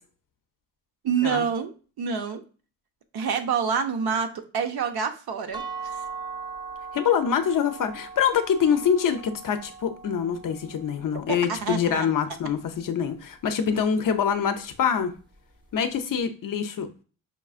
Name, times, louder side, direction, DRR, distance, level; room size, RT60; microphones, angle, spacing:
voice 1, 1.0-2.4 3.1-5.6 11.5-12.1, right 6 dB, 60° right, 7 dB, 0.7 m, -27 dB
sound 1, 5.5-11.3, right 5 dB, 10° right, 0.4 m, -39 dB
voice 2, 6.9-15.1 15.7-16.9, left 7 dB, 50° left, 8 dB, 0.5 m, -25 dB
5.3 x 2.4 x 2.4 m, 0.37 s
cardioid pair, 110°, 42 cm